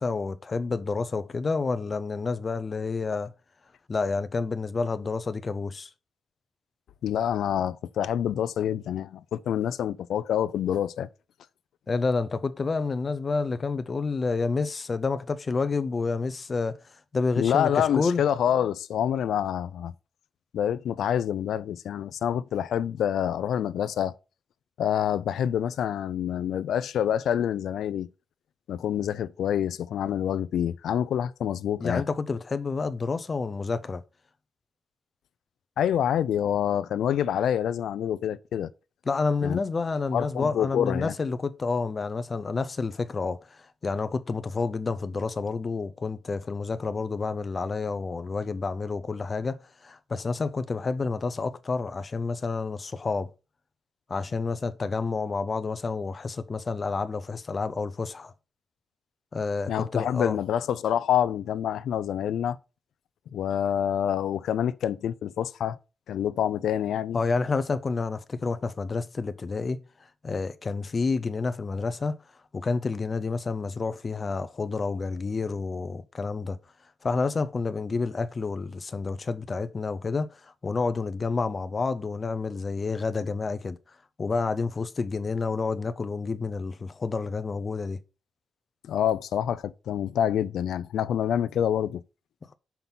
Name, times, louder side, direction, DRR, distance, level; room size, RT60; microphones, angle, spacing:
voice 1, 0.0-3.3 3.9-5.9 11.9-16.8 17.1-18.2 31.8-34.0 39.1-49.6 49.8-53.3 54.1-58.3 59.3-60.4 67.1-69.8 70.2-72.2 72.5-76.6 77.0-83.8 84.2-88.0, left 4 dB, 30° left, 0.5 m, -29 dB
voice 2, 7.0-11.1 17.4-19.9 20.5-24.1 24.8-28.1 28.7-32.0 35.8-38.7 39.4-39.6 40.1-41.1 59.7-62.6 63.3-65.8 66.1-67.2 88.8-92.0, left 9 dB, 90° left, 0.4 m, -27 dB
5.8 x 5.3 x 5.9 m
wide cardioid pair, 170°, 0 cm